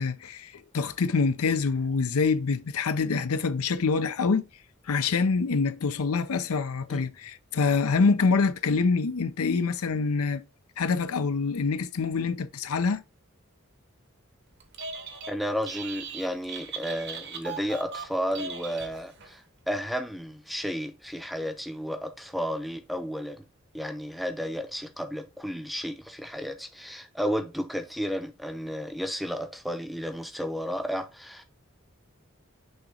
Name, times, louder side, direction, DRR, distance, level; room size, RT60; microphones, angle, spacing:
voice 1, 0.0-4.5 4.9-10.4 10.8-13.0, left 4 dB, 85° left, 0.6 m, -26 dB
Telephone, 14.6-15.3 15.6-19.3, right 5 dB, 50° right, 1.0 m, -39 dB
voice 2, 15.3-19.4 19.7-23.4 23.7-31.4, equal, ahead, 0.6 m, -32 dB
6.4 x 3.0 x 4.9 m
head